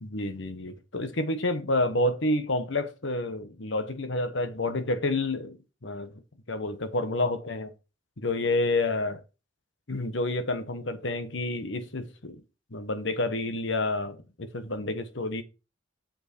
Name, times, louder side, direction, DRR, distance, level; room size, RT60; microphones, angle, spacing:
voice 1, 0.0-5.6 5.8-6.1 6.5-7.7 8.2-9.2 9.9-12.4 12.7-15.4, left 2 dB, 70° left, 1.2 m, -29 dB
7.4 x 5.6 x 4.4 m
head